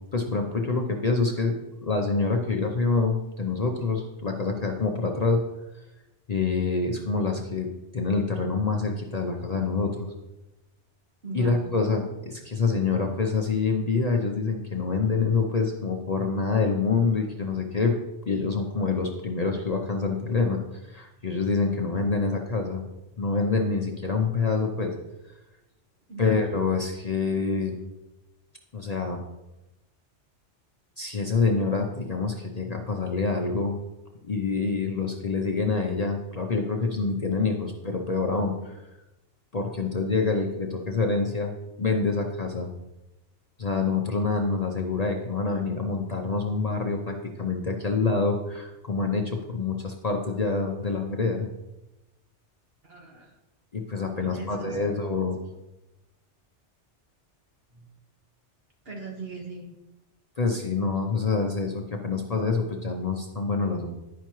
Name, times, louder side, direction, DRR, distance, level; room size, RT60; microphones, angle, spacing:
voice 1, 0.1-1.5 1.8-5.4 6.3-7.7 7.9-10.1 11.3-18.0 18.3-22.8 23.2-24.9 26.2-27.8 28.7-29.2 31.0-33.8 34.2-38.8 39.5-42.7 43.6-51.5 53.7-55.4 60.4-63.9, left 4 dB, 45° left, 2 dB, 0.6 m, -26 dB
voice 2, 11.2-11.6 26.1-26.4 52.8-53.3 54.2-54.9 57.7-57.8 58.8-59.7, right 3 dB, 55° right, 0 dB, 1.5 m, -39 dB
10.5 x 5.6 x 3.0 m, 0.99 s
omnidirectional pair, 1.2 m